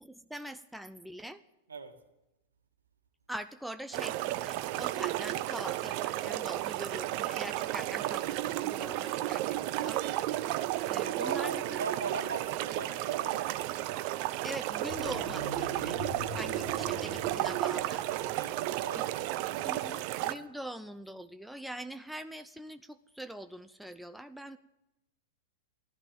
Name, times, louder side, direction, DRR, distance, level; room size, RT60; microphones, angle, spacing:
voice 1, 0.0-1.4 3.3-10.0 10.9-11.8 14.4-16.0 16.3-18.0 18.9-19.0 19.6-24.6, right 1 dB, ahead, 10 dB, 0.5 m, -43 dB
sound 1, 3.9-20.4, right 15 dB, 45° right, 0.7 m, -33 dB
voice 2, 11.0-13.5 17.2-19.9, right 5 dB, 75° right, 5 dB, 1.9 m, -41 dB
sound 2, 14.8-19.5 19.8-19.9, left 2 dB, 90° left, 7.1 m, -45 dB
15.5 x 12.0 x 7.5 m, 0.93 s
figure-of-eight pair, 95°, 0 cm